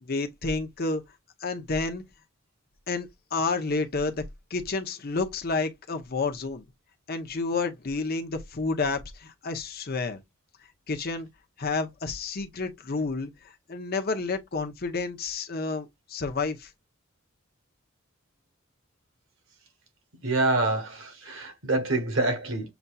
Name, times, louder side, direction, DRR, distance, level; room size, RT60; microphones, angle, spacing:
voice 1, 0.0-1.0 1.4-2.0 2.9-4.2 4.5-6.7 7.1-10.2 10.9-11.3 11.6-13.3 13.7-16.7, left 3 dB, 45° left, 0.7 m, -30 dB
voice 2, 20.2-22.7, right 2 dB, 65° right, 1.2 m, -26 dB
7.0 x 2.7 x 2.3 m
head